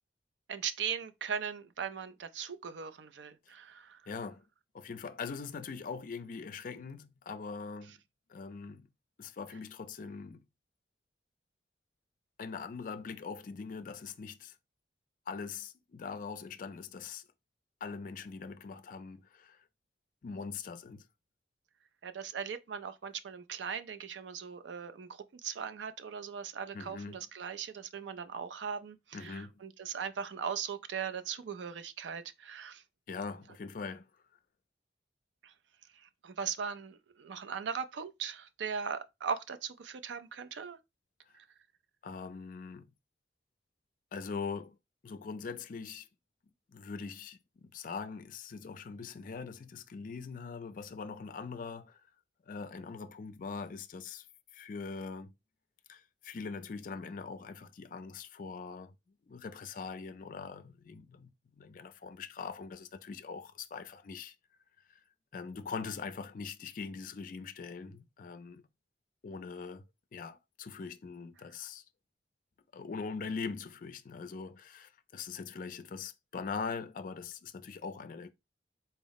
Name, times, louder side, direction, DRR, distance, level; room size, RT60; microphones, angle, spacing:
voice 1, 0.5-4.0 22.0-32.8 35.4-35.5 36.0-40.8 41.3-41.4, right 7 dB, 85° right, 0.4 m, -39 dB
voice 2, 4.1-4.4 4.7-8.0 8.3-8.9 9.2-10.4 12.4-14.6 15.3-17.2 17.8-19.6 20.2-21.0 26.7-27.2 29.1-29.5 33.1-34.1 42.0-42.9 44.1-44.8 45.0-46.1 46.7-52.0 52.5-54.3 54.5-55.3 55.9-58.9 59.3-64.3 65.3-68.6 69.2-69.8 70.1-71.8 72.7-78.3, left 5 dB, 50° left, 0.4 m, -42 dB
4.0 x 2.0 x 3.9 m
head